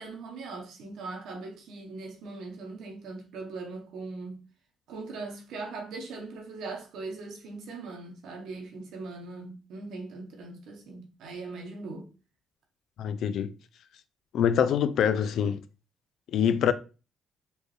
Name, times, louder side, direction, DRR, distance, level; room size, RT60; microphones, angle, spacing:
voice 1, 0.0-4.4 4.9-12.1, right 3 dB, 80° right, 1.1 m, -40 dB
voice 2, 13.0-13.5 14.3-15.6 16.3-16.7, left 8 dB, 75° left, 0.4 m, -24 dB
4.3 x 2.6 x 3.3 m
cardioid pair, 90°, 0 cm